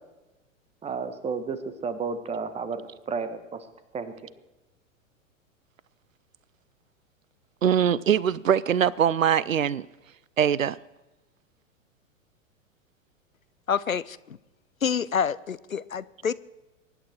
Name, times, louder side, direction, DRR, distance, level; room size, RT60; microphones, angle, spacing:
voice 1, 0.8-1.6 1.8-3.4 3.9-4.1, right 5 dB, 15° right, 1.4 m, -31 dB
voice 2, 7.6-9.8 10.4-10.8, right 8 dB, 80° right, 0.6 m, -22 dB
voice 3, 13.7-14.4 14.8-16.3, left 7 dB, 90° left, 0.7 m, -27 dB
23.5 x 11.0 x 4.6 m
figure-of-eight pair, 100°, 40 cm